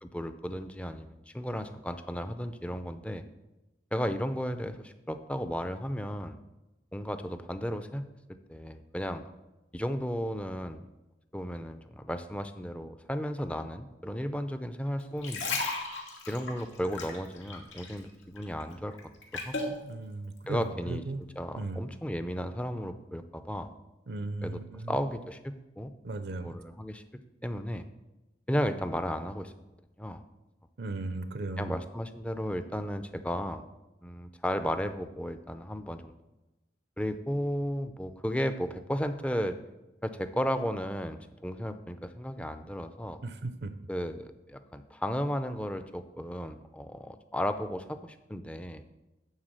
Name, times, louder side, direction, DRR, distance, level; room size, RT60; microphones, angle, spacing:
voice 1, 0.0-3.2 3.9-6.4 6.9-8.1 8.5-9.2 9.7-10.8 11.3-15.6 16.3-19.0 19.3-19.8 20.5-21.0 21.4-23.7 24.4-25.9 26.4-27.0 27.4-27.8 28.5-29.5 30.0-30.2 31.6-33.6 34.0-36.1 37.0-39.6 40.0-43.2 43.9-48.8, equal, 5° left, 9 dB, 0.5 m, -34 dB
sound 1, 15.0-18.1 18.4-19.8 20.4-20.5, left 3 dB, 85° left, 2.1 m, -35 dB
voice 2, 19.8-21.2 21.5-21.8 24.1-25.0 26.0-26.5 30.8-31.7 43.2-43.7, right 2 dB, 60° right, 10 dB, 0.6 m, -36 dB
11.5 x 3.9 x 7.5 m, 1.0 s
head